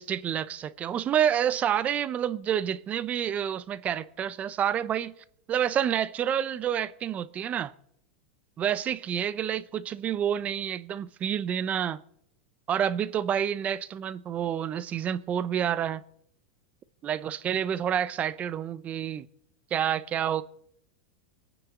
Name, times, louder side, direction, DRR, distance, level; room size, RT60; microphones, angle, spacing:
voice 1, 0.0-5.1 5.5-7.7 8.6-12.0 12.7-16.0 17.0-19.3 19.7-20.4, right 9 dB, 25° right, 0.6 m, -28 dB
25.0 x 9.4 x 3.7 m
supercardioid pair, 150°, 6 cm